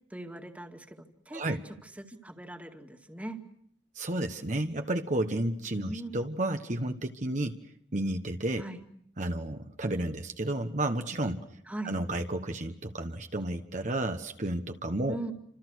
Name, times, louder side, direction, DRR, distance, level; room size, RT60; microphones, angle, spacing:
voice 1, 0.1-1.6 2.0-3.4 5.7-6.2 8.6-8.8 11.7-11.9 15.1-15.3, right 1 dB, 10° right, 6 dB, 2.1 m, -40 dB
voice 2, 1.3-1.6 3.9-7.6 7.9-8.6 9.2-11.5 11.8-15.2, right 1 dB, 45° right, 6 dB, 1.3 m, -32 dB
29.5 x 26.0 x 6.4 m, 0.67 s
head